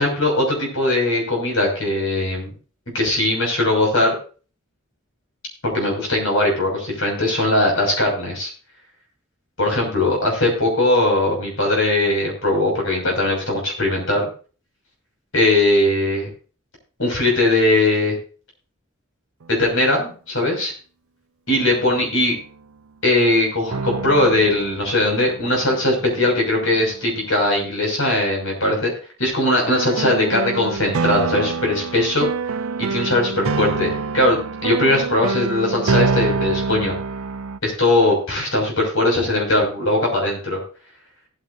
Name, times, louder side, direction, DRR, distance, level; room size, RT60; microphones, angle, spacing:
voice 1, 0.0-2.5 2.9-4.1 5.7-8.5 9.6-14.2 15.3-16.3 17.0-18.2 19.5-20.7 21.5-22.3 23.0-28.9 29.2-32.3 32.8-33.9 34.1-36.9 37.6-40.6, left 1 dB, 65° left, 1 dB, 6.2 m, -20 dB
sound 1, 19.4-19.5 21.5-22.5 23.7-27.0 29.7-37.6, right 4 dB, 80° right, 0.6 m, -26 dB
18.0 x 9.1 x 2.7 m, 0.37 s
head